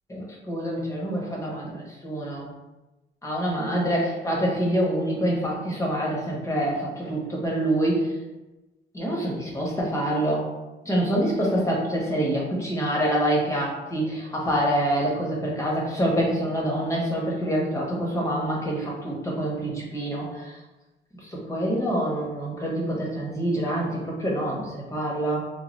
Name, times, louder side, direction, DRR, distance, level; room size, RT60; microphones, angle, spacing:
voice 1, 0.1-2.5 3.2-8.1 8.9-10.5 10.8-20.6 21.2-25.4, right 1 dB, 15° left, -4 dB, 1.2 m, -26 dB
3.7 x 2.3 x 3.2 m, 1.1 s
cardioid pair, 90°, 20 cm